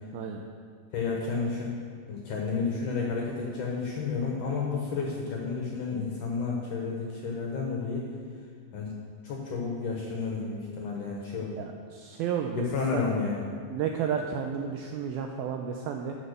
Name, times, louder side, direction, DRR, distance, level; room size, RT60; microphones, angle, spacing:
voice 1, 0.9-1.7 2.1-8.1 8.7-8.9 9.2-11.6 12.5-13.4, left 4 dB, 65° left, -1 dB, 2.1 m, -31 dB
voice 2, 11.6-12.7 12.9-13.1 13.7-16.2, right 7 dB, 90° right, 3 dB, 2.1 m, -32 dB
13.0 x 6.2 x 6.7 m, 2.1 s
omnidirectional pair, 5.0 m